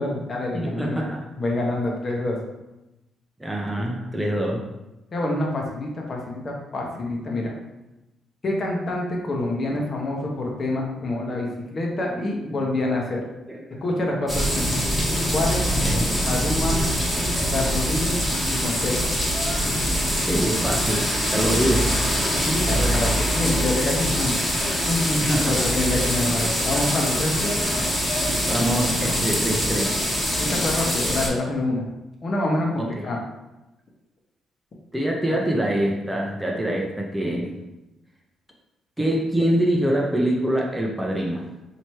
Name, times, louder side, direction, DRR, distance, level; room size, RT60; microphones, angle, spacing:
voice 1, 0.0-1.0 1.4-2.4 5.1-7.5 8.4-13.2 13.8-14.8 15.3-15.6 16.3-16.8 17.5-18.1 18.5-19.1 22.4-24.4 24.9-27.5 30.4-31.9 32.2-33.2 35.3-35.4, left 2 dB, 40° left, -1 dB, 1.0 m, -26 dB
voice 2, 0.5-1.3 3.4-4.6 11.3-11.4 13.5-13.8 15.8-16.3 20.3-21.9 25.3-25.7 28.5-30.0 32.8-32.9 34.9-37.5 39.0-41.5, right 1 dB, 10° right, 0 dB, 0.6 m, -25 dB
sound 1, 14.3-31.3, equal, 5° left, 1.3 m, -24 dB
3.2 x 2.8 x 4.4 m, 0.98 s
cardioid pair, 90°, 0 cm